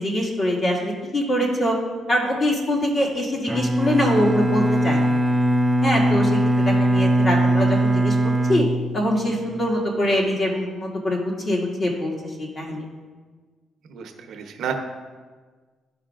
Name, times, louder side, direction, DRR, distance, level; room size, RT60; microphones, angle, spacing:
voice 1, 0.0-1.7 2.1-5.1 5.8-6.3 6.7-8.7 8.9-12.1 12.4-12.8, equal, 40° left, -3 dB, 2.0 m, -23 dB
Bowed string instrument, 3.5-9.5, right 1 dB, 15° right, 0.4 m, -20 dB
voice 2, 13.9-14.7, right 8 dB, 75° right, 5 dB, 0.7 m, -31 dB
12.5 x 5.3 x 2.5 m, 1.5 s
cardioid pair, 90°, 0 cm